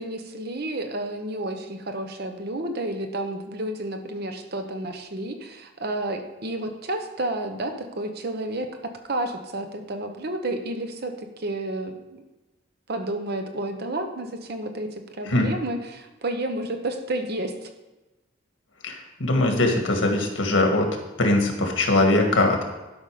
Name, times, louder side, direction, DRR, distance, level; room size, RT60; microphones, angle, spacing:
voice 1, 0.0-12.2 12.9-14.9 15.1-17.7, right 1 dB, 55° right, 6 dB, 1.0 m, -31 dB
voice 2, 19.2-20.9 21.2-22.6, left 2 dB, 80° left, 3 dB, 1.6 m, -21 dB
12.0 x 5.5 x 5.0 m, 1.1 s
head